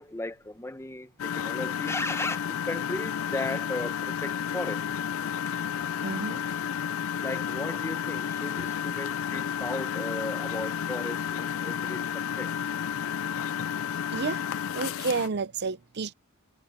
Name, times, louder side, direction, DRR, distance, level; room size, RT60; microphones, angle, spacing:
voice 1, 0.0-2.4 2.7-4.8 7.2-12.5, left 2 dB, 10° left, 0.9 m, -36 dB
Engine, 1.2-15.3, left 8 dB, 65° left, 0.4 m, -31 dB
voice 2, 6.0-6.4 14.1-14.4 14.7-16.1, right 4 dB, 50° right, 0.6 m, -30 dB
head